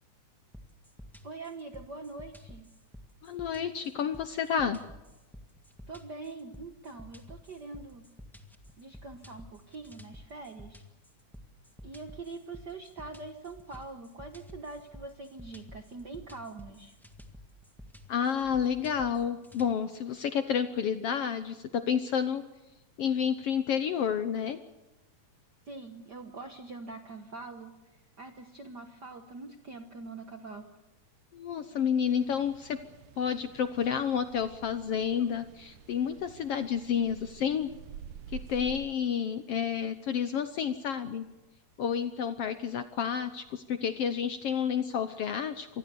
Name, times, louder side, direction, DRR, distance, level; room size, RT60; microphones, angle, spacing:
sound 1, 0.5-19.7, left 1 dB, ahead, 0.4 m, -51 dB
voice 1, 1.2-2.7 5.9-8.0 8.8-10.8 11.8-17.0 25.6-30.7, right 3 dB, 55° right, 6 dB, 1.2 m, -44 dB
voice 2, 3.2-4.8 18.1-22.4 23.0-24.6 31.3-32.8 33.2-37.7 38.3-41.3 41.8-45.7, left 7 dB, 70° left, 10 dB, 1.6 m, -30 dB
sound 2, 32.1-38.9, right 9 dB, 85° right, 2.7 m, -49 dB
26.0 x 20.0 x 7.0 m, 1.0 s
omnidirectional pair, 3.6 m